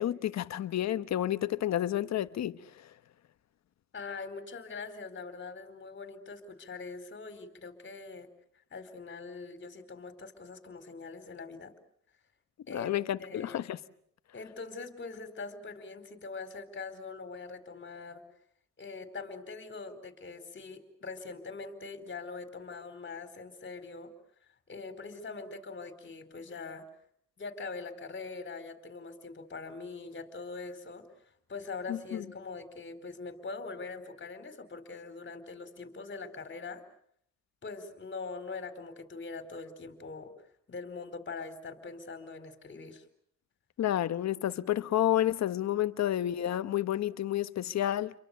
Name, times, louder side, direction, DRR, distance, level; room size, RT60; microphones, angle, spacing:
voice 1, 0.0-2.6 12.7-13.8 31.9-32.2 43.8-48.1, left 12 dB, 60° left, 1.2 m, -30 dB
voice 2, 3.9-8.3 8.7-11.7 12.7-12.9 13.2-13.7 14.3-18.2 18.8-24.1 24.7-26.9 27.4-31.0 31.5-36.8 37.6-40.3 40.7-43.0, left 4 dB, 40° left, 4.5 m, -42 dB
30.0 x 23.5 x 6.8 m
cardioid pair, 90°, 30 cm